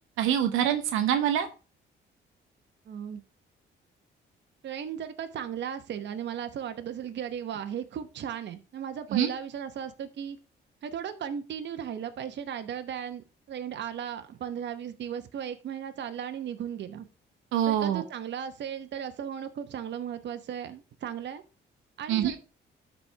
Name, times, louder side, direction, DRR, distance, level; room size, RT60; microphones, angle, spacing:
voice 1, 0.2-1.5 9.1-9.3 17.5-18.0 22.1-22.3, right 10 dB, 90° right, 7 dB, 1.0 m, -25 dB
voice 2, 2.9-3.2 4.6-10.4 10.8-17.1 17.7-21.4 22.0-22.4, right 8 dB, 60° right, 8 dB, 1.0 m, -36 dB
12.0 x 4.3 x 3.3 m, 0.32 s
cardioid pair, 90°, 20 cm